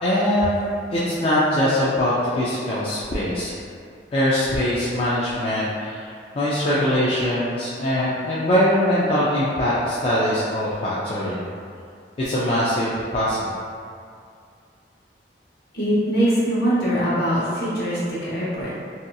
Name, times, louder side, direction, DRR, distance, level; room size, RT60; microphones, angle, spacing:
voice 1, 0.0-3.5 4.1-6.1 6.3-11.4 12.2-13.5, equal, 35° left, -9 dB, 0.3 m, -22 dB
voice 2, 15.7-18.7, equal, 60° left, -9 dB, 0.9 m, -22 dB
2.7 x 2.6 x 2.2 m, 2.3 s
head